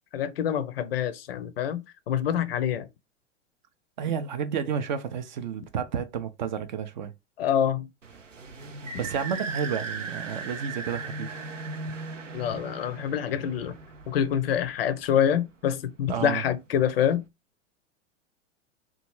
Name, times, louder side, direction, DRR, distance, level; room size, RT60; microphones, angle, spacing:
voice 1, 0.1-2.9 7.4-7.9 12.3-13.7 14.1-17.2, left 9 dB, 55° left, 0.5 m, -26 dB
voice 2, 4.0-7.1 9.0-11.4 16.1-16.4, right 7 dB, 40° right, 0.4 m, -31 dB
sound 1, 8.0-15.3, right 3 dB, 85° right, 0.6 m, -38 dB
2.9 x 2.3 x 2.9 m
figure-of-eight pair, 95°, 37 cm